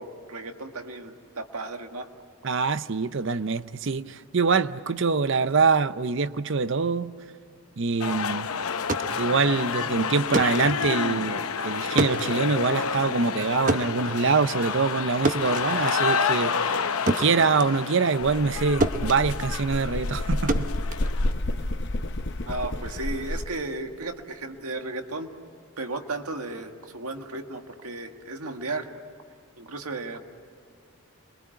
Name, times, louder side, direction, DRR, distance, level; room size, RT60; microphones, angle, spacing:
voice 1, 0.0-2.1 22.5-25.3 25.8-28.9 29.6-30.2, right 2 dB, 85° right, 1.8 m, -34 dB
voice 2, 2.4-7.1 7.8-8.5 9.1-16.9 17.2-20.7, right 4 dB, 55° right, 0.6 m, -24 dB
sound 1, 8.0-21.3, left 5 dB, 80° left, 0.9 m, -29 dB
sound 2, 8.7-18.6 18.8-21.8, right 2 dB, 35° right, 1.0 m, -31 dB
sound 3, 18.2-23.5, left 1 dB, 50° left, 0.9 m, -30 dB
28.0 x 23.0 x 9.0 m
head